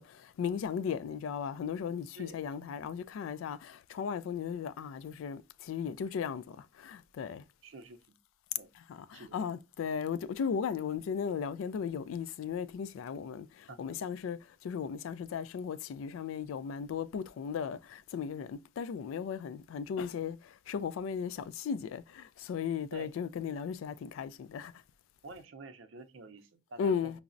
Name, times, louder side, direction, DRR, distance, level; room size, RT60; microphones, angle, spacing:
voice 1, 0.0-7.4 8.9-24.7 26.8-27.2, left 7 dB, 90° left, 0.3 m, -36 dB
voice 2, 7.6-8.0 8.6-8.7 9.1-9.5 13.7-14.0 22.9-23.1 25.2-27.2, right 2 dB, 85° right, 0.5 m, -48 dB
5.6 x 2.0 x 2.5 m
head